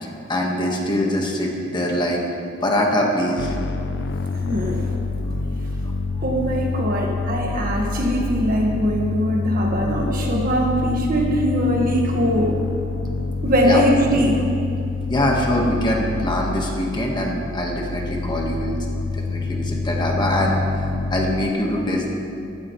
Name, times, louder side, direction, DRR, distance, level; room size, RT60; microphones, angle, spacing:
voice 1, 0.0-2.2 2.6-3.5 13.6-13.8 15.1-18.8 19.1-22.1, left 1 dB, 25° left, -1 dB, 1.5 m, -23 dB
sound 1, 3.4-21.5, left 3 dB, 65° left, 0.6 m, -27 dB
voice 2, 4.3-4.9 6.2-12.6 13.4-14.4, equal, 50° right, 0 dB, 1.7 m, -21 dB
15.5 x 12.0 x 3.2 m, 2.7 s
head